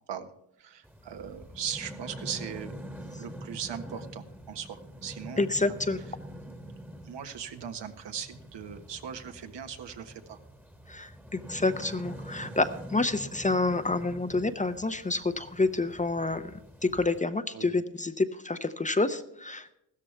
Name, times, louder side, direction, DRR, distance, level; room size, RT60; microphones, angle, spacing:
voice 1, 0.6-2.8 3.2-5.5 7.0-10.4 17.5-17.7, right 8 dB, 70° right, 7 dB, 1.5 m, -39 dB
sound 1, 0.8-17.2, equal, 5° right, 1.4 m, -45 dB
voice 2, 5.4-6.1 10.9-19.7, left 3 dB, 15° left, 10 dB, 0.7 m, -28 dB
15.0 x 13.5 x 3.4 m, 0.82 s
cardioid pair, 95°, 44 cm